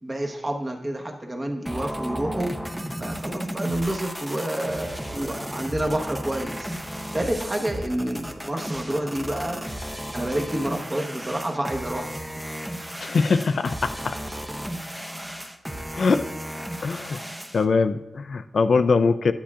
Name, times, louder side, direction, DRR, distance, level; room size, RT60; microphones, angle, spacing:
voice 1, 0.0-2.5 3.0-6.7 7.1-9.6 10.1-12.1, right 1 dB, 20° right, 2 dB, 1.0 m, -28 dB
sound 1, 1.7-17.7, equal, 5° right, 0.6 m, -34 dB
voice 2, 13.0-14.2 15.9-16.3 16.8-17.2 17.5-19.3, left 4 dB, 60° left, 11 dB, 0.4 m, -22 dB
10.0 x 8.4 x 2.4 m, 0.95 s
wide cardioid pair, 120°, 0 cm